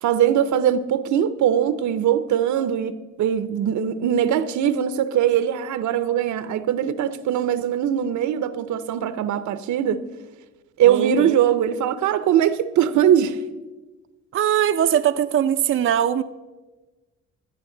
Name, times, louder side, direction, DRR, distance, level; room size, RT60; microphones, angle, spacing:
voice 1, 0.0-10.0 10.8-13.4, right 9 dB, 75° right, 0.7 m, -21 dB
voice 2, 10.9-11.4 14.3-16.2, right 10 dB, 45° right, 0.5 m, -21 dB
16.0 x 10.0 x 3.8 m
cardioid pair, 90°, 30 cm